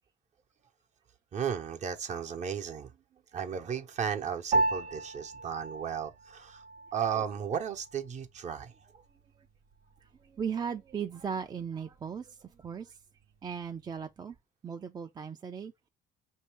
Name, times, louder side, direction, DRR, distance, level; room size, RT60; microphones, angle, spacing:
voice 1, 1.3-2.9 3.3-6.6 6.9-8.7, right 8 dB, 45° right, 0.8 m, -34 dB
Piano, 4.5-14.1, right 2 dB, 75° right, 0.8 m, -37 dB
voice 2, 10.0-13.0 13.4-14.4 14.6-15.9, right 7 dB, 25° right, 0.4 m, -37 dB
5.3 x 2.7 x 3.3 m
cardioid pair, 110°, 17 cm